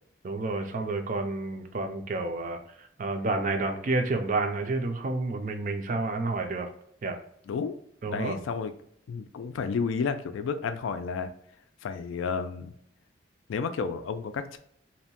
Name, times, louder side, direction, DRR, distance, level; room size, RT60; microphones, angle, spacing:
voice 1, 0.2-6.7 7.0-7.2 8.0-8.4, right 3 dB, 40° right, 5 dB, 0.4 m, -30 dB
voice 2, 8.1-8.7 9.1-11.3 11.8-12.7 13.5-14.6, left 5 dB, 90° left, 9 dB, 0.3 m, -31 dB
2.7 x 2.1 x 2.8 m, 0.69 s
head